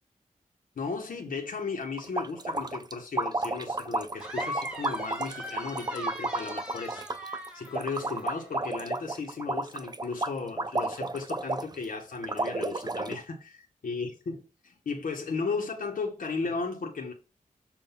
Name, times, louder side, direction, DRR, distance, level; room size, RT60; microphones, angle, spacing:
voice 1, 0.8-17.1, left 4 dB, 80° left, 1.1 m, -35 dB
sound 1, 2.0-11.8 12.2-13.2, right 2 dB, 30° right, 0.5 m, -32 dB
sound 2, 4.2-8.6, equal, 5° right, 1.7 m, -40 dB
7.1 x 2.6 x 5.7 m
wide cardioid pair, 90°, 14 cm